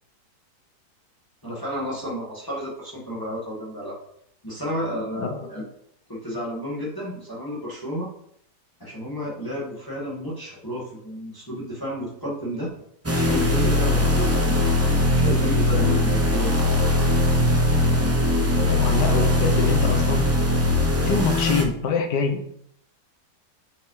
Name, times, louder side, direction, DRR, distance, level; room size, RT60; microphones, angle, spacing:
voice 1, 1.4-4.0 4.4-5.7 6.1-8.1 8.8-12.7 13.1-16.6, equal, 10° left, -6 dB, 1.9 m, -31 dB
sound 1, 13.0-21.6, left 1 dB, 25° right, 0.3 m, -20 dB
voice 2, 18.5-20.3 21.0-22.4, left 5 dB, 80° left, 5 dB, 1.6 m, -25 dB
7.4 x 5.4 x 3.3 m, 0.69 s
omnidirectional pair, 1.8 m